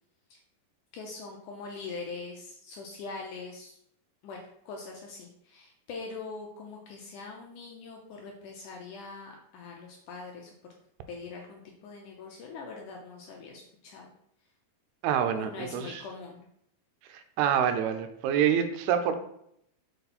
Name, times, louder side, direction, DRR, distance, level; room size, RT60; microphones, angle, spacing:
voice 1, 0.9-3.8 4.2-4.4 4.7-10.5 11.1-14.1 15.3-16.5, left 4 dB, 75° left, 0 dB, 1.9 m, -42 dB
voice 2, 15.0-16.0 17.1-19.2, right 9 dB, 90° right, 8 dB, 2.7 m, -27 dB
6.8 x 4.8 x 4.2 m, 0.72 s
omnidirectional pair, 4.4 m